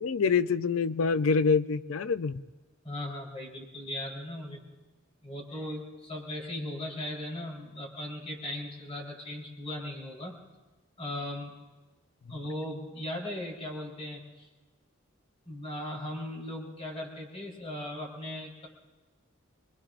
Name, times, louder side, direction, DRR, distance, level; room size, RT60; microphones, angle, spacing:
voice 1, 0.0-2.4, left 5 dB, 75° left, 13 dB, 0.5 m, -26 dB
voice 2, 2.8-4.6 5.2-10.4 11.0-11.5 12.3-14.5 15.4-18.7, left 1 dB, 30° left, -2 dB, 3.8 m, -38 dB
26.0 x 21.5 x 2.5 m, 1.2 s
head